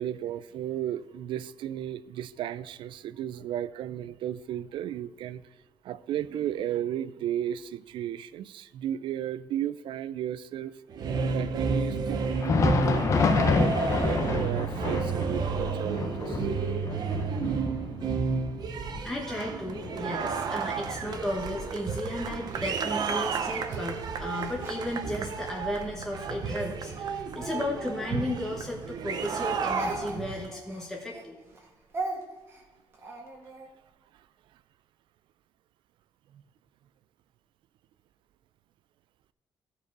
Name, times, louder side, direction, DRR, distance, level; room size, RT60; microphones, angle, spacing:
voice 1, 0.0-5.4 5.8-10.8 11.3-13.1 13.3-16.5 24.3-24.5 36.3-36.4, right 11 dB, 75° right, 16 dB, 0.4 m, -34 dB
sound 1, 10.9-30.5, right 5 dB, 55° right, 0.8 m, -31 dB
Thunder, 12.2-21.7 22.0-22.2 22.9-23.1 24.1-24.2, left 4 dB, 35° left, 0.7 m, -29 dB
voice 2, 18.9-31.3, left 1 dB, 5° left, -2 dB, 1.1 m, -34 dB
Speech, 22.5-25.6 26.2-29.0 29.3-33.7, right 2 dB, 30° right, 1.6 m, -41 dB
14.0 x 4.8 x 4.7 m, 1.3 s
cardioid pair, 160°, 8 cm